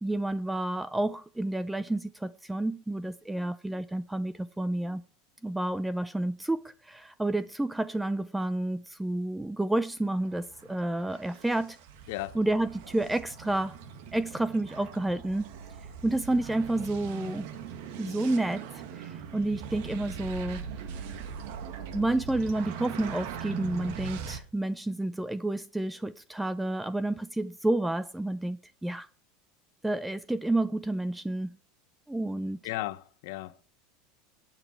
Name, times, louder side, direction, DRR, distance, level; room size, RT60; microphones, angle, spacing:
voice 1, 0.0-5.0 5.4-11.8 12.3-13.8 14.1-15.5 16.0-17.5 18.0-20.6 20.9-21.0 21.9-29.1 29.8-31.5 32.1-32.6, right 2 dB, 5° right, 0.5 m, -30 dB
sound 1, 10.0-24.4, right 7 dB, 70° right, 2.0 m, -41 dB
voice 2, 32.6-33.6, left 17 dB, 70° left, 0.9 m, -35 dB
15.0 x 9.0 x 4.6 m
supercardioid pair, 135°, 0 cm